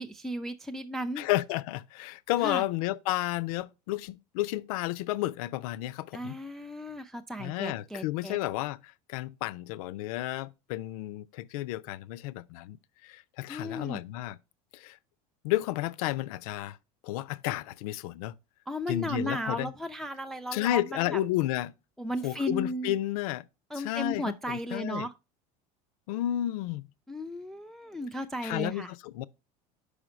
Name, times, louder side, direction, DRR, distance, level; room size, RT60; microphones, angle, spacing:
voice 1, 0.0-1.3 2.4-2.6 6.1-8.4 13.5-14.0 18.7-21.2 22.0-22.9 23.7-25.1 27.1-28.9, equal, ahead, 0.4 m, -35 dB
voice 2, 1.2-6.4 7.4-12.8 13.0-14.4 14.7-15.0 15.4-16.8 17.0-18.3 18.9-19.7 20.5-21.7 22.2-23.4 23.7-25.1 26.1-26.9 28.4-29.2, left 15 dB, 75° left, 0.4 m, -32 dB
5.0 x 4.9 x 5.0 m
supercardioid pair, 100°, 19 cm